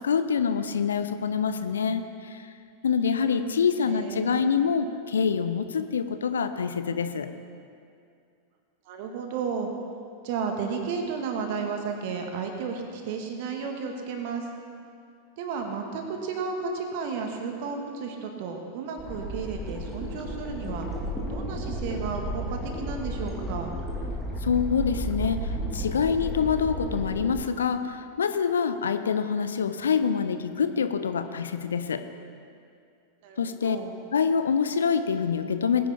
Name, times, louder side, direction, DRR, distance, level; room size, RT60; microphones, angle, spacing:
voice 1, 0.0-2.5 2.8-7.3 24.4-32.0 33.4-33.8 34.1-35.9, left 6 dB, 70° left, 10 dB, 0.6 m, -26 dB
voice 2, 3.8-4.5 8.9-9.7 10.2-14.5 15.4-20.9 21.3-23.7 33.2-33.9, right 5 dB, 50° right, 3 dB, 1.7 m, -33 dB
sound 1, 19.0-27.3, right 1 dB, ahead, 2.2 m, -33 dB
20.5 x 9.8 x 3.7 m, 2.4 s
figure-of-eight pair, 90°, 0 cm